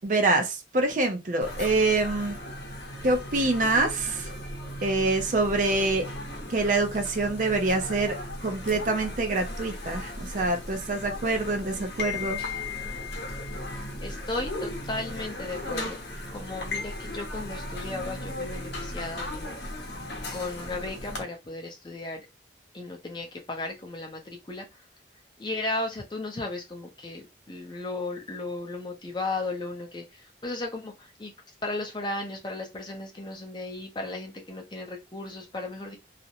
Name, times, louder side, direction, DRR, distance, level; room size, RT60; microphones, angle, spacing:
voice 1, 0.0-2.4 3.0-4.3 4.8-6.1 6.5-8.1 8.4-12.4, right 2 dB, 45° right, 0.5 m, -25 dB
sound 1, 1.4-21.2, left 1 dB, 65° left, 0.7 m, -36 dB
voice 2, 14.0-16.0 16.3-19.6 20.3-22.3 22.7-24.7 25.4-31.3 31.6-36.0, left 2 dB, 25° left, 0.5 m, -35 dB
2.4 x 2.0 x 2.8 m
head